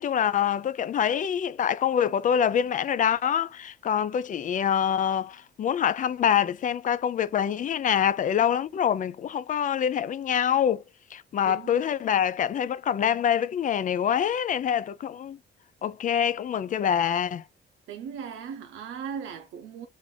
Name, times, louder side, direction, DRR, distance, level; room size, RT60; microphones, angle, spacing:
voice 1, 0.0-10.8 11.1-15.4 15.8-17.4, left 9 dB, 40° left, 0.4 m, -25 dB
voice 2, 11.5-11.8 17.9-19.9, right 7 dB, 80° right, 0.6 m, -38 dB
3.3 x 2.6 x 3.7 m
cardioid pair, 90°, 20 cm